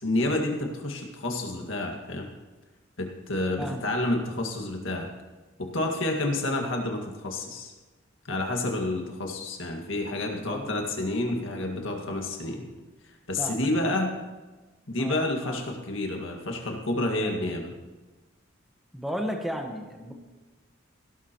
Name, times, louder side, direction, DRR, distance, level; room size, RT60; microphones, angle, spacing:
voice 1, 0.0-2.3 3.0-5.1 5.6-7.7 8.2-12.6 13.3-14.1 14.9-17.7, left 2 dB, 70° left, 2 dB, 2.0 m, -29 dB
voice 2, 3.6-3.9 10.5-10.8 13.4-14.0 15.0-15.6 17.2-17.4 18.9-20.1, equal, ahead, 2 dB, 1.3 m, -35 dB
17.0 x 12.0 x 3.1 m, 1.2 s
head